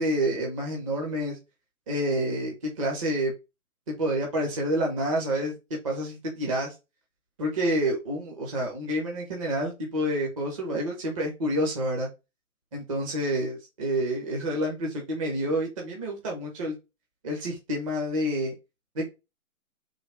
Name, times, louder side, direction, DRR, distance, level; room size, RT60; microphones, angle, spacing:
voice 1, 0.0-1.4 1.9-3.3 3.9-5.6 5.8-6.7 7.4-12.1 12.7-16.7 17.2-18.5 18.9-19.1, equal, 25° right, -1 dB, 0.8 m, -28 dB
3.9 x 2.8 x 4.8 m, 0.26 s
figure-of-eight pair, 145°, 43 cm